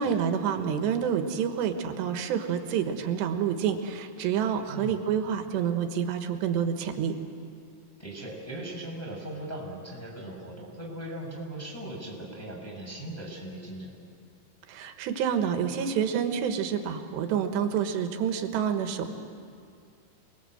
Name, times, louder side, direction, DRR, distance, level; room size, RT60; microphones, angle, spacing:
voice 1, 0.0-7.1 14.7-19.2, right 8 dB, 80° right, 6 dB, 3.4 m, -28 dB
voice 2, 4.7-5.0 8.0-13.9, right 1 dB, 5° left, 0 dB, 6.0 m, -39 dB
27.5 x 21.0 x 7.9 m, 2.3 s
omnidirectional pair, 4.9 m